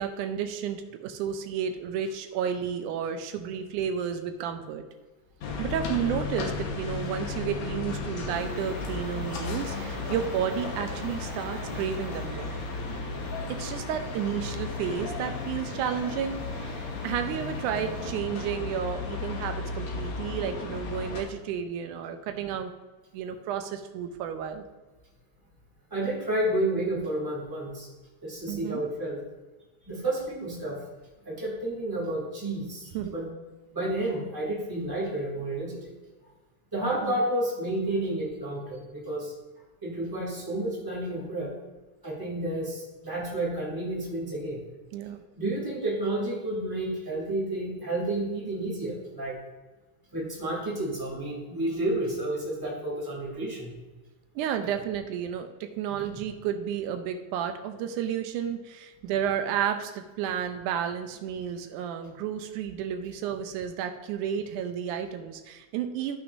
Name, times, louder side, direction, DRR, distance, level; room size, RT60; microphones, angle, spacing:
voice 1, 0.0-4.9 5.6-12.5 13.5-22.7 23.1-24.7 28.5-28.9 32.9-33.1 37.0-37.2 44.9-45.2 54.4-66.2, right 8 dB, 90° right, 7 dB, 2.2 m, -32 dB
sound 1, 5.4-21.2, left 4 dB, 70° left, 2.3 m, -34 dB
sound 2, 8.3-18.0, right 2 dB, 55° right, 1.8 m, -47 dB
voice 2, 25.9-27.9 28.2-29.2 29.9-30.8 31.2-33.3 33.7-35.9 36.7-39.3 39.8-41.5 42.0-44.6 45.4-49.4 50.1-53.7, right 1 dB, 10° right, -4 dB, 2.1 m, -30 dB
14.0 x 5.9 x 2.6 m, 1.2 s
omnidirectional pair, 3.5 m